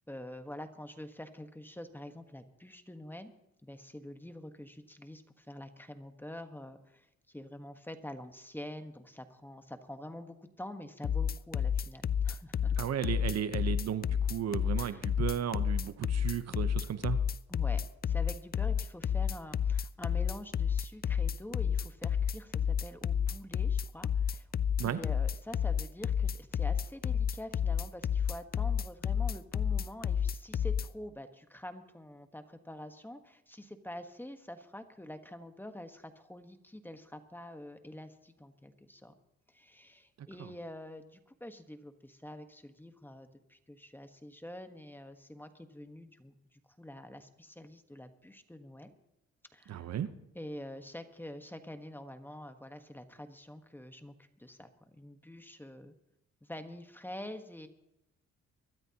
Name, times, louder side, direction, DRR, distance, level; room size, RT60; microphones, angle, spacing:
voice 1, 0.1-3.3 3.6-12.8 14.8-15.0 17.5-24.5 24.8-39.1 39.5-48.9 49.5-49.9 50.3-55.9 56.4-57.7, left 1 dB, 5° left, 8 dB, 1.3 m, -46 dB
sound 1, 11.0-30.9, left 8 dB, 30° left, 0.4 m, -30 dB
voice 2, 12.8-17.2 24.8-25.0 40.2-40.5 49.7-50.1, right 9 dB, 60° right, 11 dB, 1.0 m, -35 dB
24.0 x 13.5 x 2.9 m, 0.87 s
cardioid pair, 90°, 30 cm